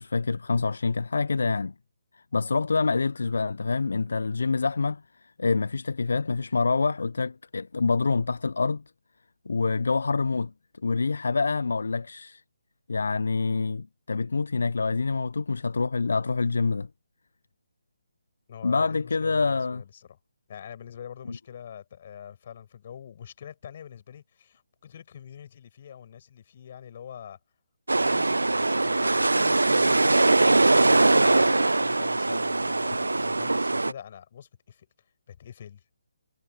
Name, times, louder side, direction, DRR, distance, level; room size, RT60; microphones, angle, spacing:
voice 1, 0.0-1.7 2.1-8.8 9.5-10.5 10.8-12.4 12.9-16.9 18.6-19.8 21.3-21.4, left 4 dB, 65° left, 0.7 m, -26 dB
voice 2, 18.5-20.1 20.5-27.4 28.0-34.9 35.3-35.8, left 9 dB, 40° left, 6.8 m, -44 dB
sound 1, 27.9-33.9, right 2 dB, 80° right, 0.4 m, -21 dB
figure-of-eight pair, 145°, 0 cm